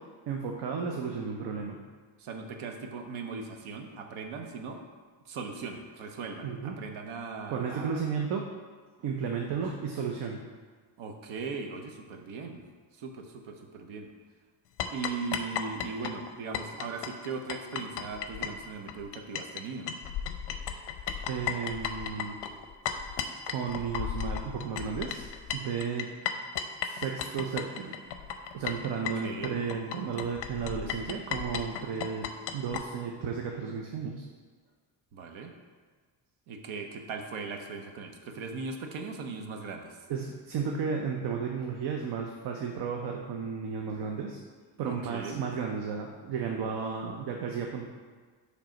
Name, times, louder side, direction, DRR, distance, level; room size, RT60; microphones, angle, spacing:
voice 1, 0.3-1.8 6.4-6.7 7.5-8.4 9.0-10.4 21.3-22.4 23.5-25.3 25.5-26.1 26.8-28.0 28.5-34.2 40.1-44.4 44.8-47.8, right 6 dB, 60° right, 1 dB, 0.7 m, -33 dB
voice 2, 2.2-4.8 5.2-8.0 11.0-12.6 12.9-14.1 14.9-19.9 29.0-29.6 35.1-35.5 36.5-40.0 44.8-45.4, right 4 dB, 90° right, 4 dB, 1.0 m, -39 dB
sound 1, 14.8-19.6 19.9-32.8, left 8 dB, 60° left, 0.6 m, -35 dB
7.5 x 3.4 x 5.1 m, 1.5 s
cardioid pair, 170°, 46 cm